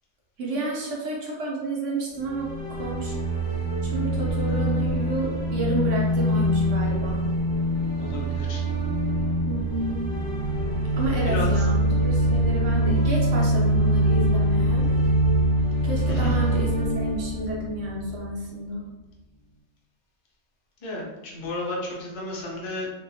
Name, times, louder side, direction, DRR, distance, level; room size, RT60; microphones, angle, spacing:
voice 1, 0.4-3.2 3.8-7.2 9.4-10.1 11.0-14.9 15.8-18.8, right 1 dB, 70° right, -3 dB, 1.0 m, -30 dB
sound 1, 2.2-18.3, right 1 dB, 25° right, 0.5 m, -24 dB
voice 2, 7.9-8.6 11.2-11.6 16.1-16.3 20.8-22.9, left 2 dB, 55° left, -3 dB, 0.3 m, -33 dB
2.5 x 2.1 x 2.7 m, 1.0 s
omnidirectional pair, 1.4 m